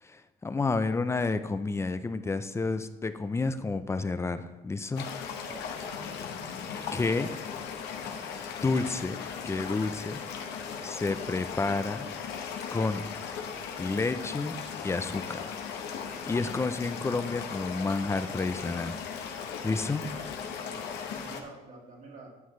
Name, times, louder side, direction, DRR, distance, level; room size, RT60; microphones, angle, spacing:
voice 1, 0.0-5.1 6.9-7.3 8.6-10.2 10.8-12.1 12.7-13.1 13.8-15.5 16.2-19.0 19.6-20.1, left 3 dB, 15° left, 11 dB, 0.5 m, -30 dB
sound 1, 5.0-21.4, left 6 dB, 80° left, 1.1 m, -37 dB
voice 2, 5.4-5.8 19.9-20.4 20.6-22.3, right 3 dB, 45° right, 0 dB, 2.0 m, -49 dB
11.5 x 7.0 x 3.2 m, 1.1 s
cardioid pair, 110°, 17 cm